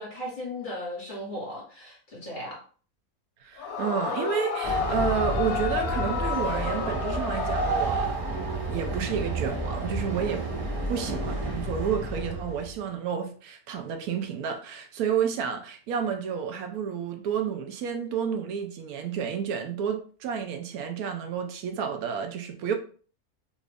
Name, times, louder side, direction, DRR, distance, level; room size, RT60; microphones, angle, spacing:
voice 1, 0.0-2.6, left 1 dB, 35° left, 1.4 m, -36 dB
voice 2, 3.4-8.2 8.7-10.5 10.9-22.7, right 7 dB, 80° right, 1.0 m, -30 dB
Yell / Screaming, 3.6-8.5, left 7 dB, 70° left, 1.0 m, -32 dB
Train, 4.6-12.8, right 2 dB, 35° right, 0.6 m, -30 dB
3.0 x 2.5 x 3.4 m
omnidirectional pair, 1.6 m